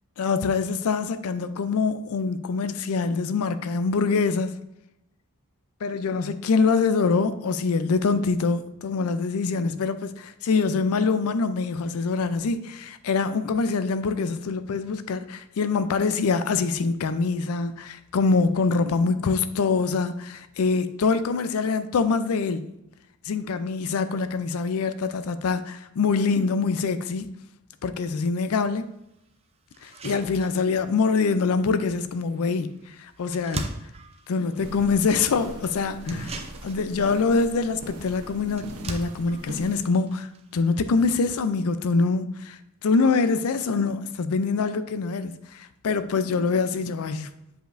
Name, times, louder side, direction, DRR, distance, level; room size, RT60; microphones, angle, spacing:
voice 1, 0.2-4.5 5.8-22.7 23.2-27.3 27.8-28.9 29.8-33.7 34.3-47.3, left 4 dB, 70° left, 0.4 m, -24 dB
sound 1, 28.7-28.8 29.3-29.4 29.7-41.4, right 2 dB, 25° right, 0.5 m, -42 dB
sound 2, 34.6-39.8, right 1 dB, 90° right, 0.8 m, -41 dB
7.7 x 5.0 x 2.5 m
head